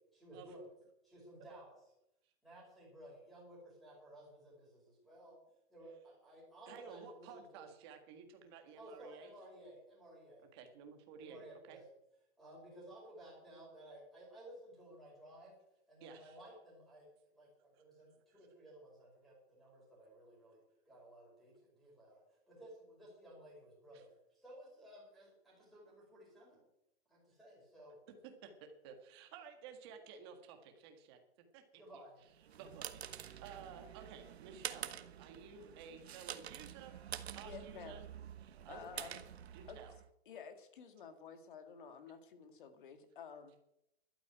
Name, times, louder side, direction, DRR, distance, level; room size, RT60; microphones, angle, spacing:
voice 1, 0.1-0.7 1.0-1.8 2.4-5.4 5.7-7.7 8.8-10.5 11.2-11.8 12.4-15.5 15.9-20.6 20.8-26.6 27.1-28.0 31.8-32.2, right 1 dB, ahead, -4 dB, 5.0 m, -56 dB
voice 2, 6.7-9.3 10.5-11.8 16.0-16.4 23.9-24.0 28.4-31.2 31.5-31.8 32.6-38.0 38.4-39.2 39.5-39.9, right 6 dB, 25° right, 6 dB, 1.7 m, -54 dB
sound 1, 32.3-40.1, right 9 dB, 70° right, 1.2 m, -48 dB
voice 3, 37.4-38.0 38.7-39.2 39.7-39.8 40.3-43.6, left 6 dB, 50° left, 8 dB, 2.2 m, -51 dB
12.0 x 9.5 x 9.4 m, 0.83 s
hypercardioid pair, 180°, 33 cm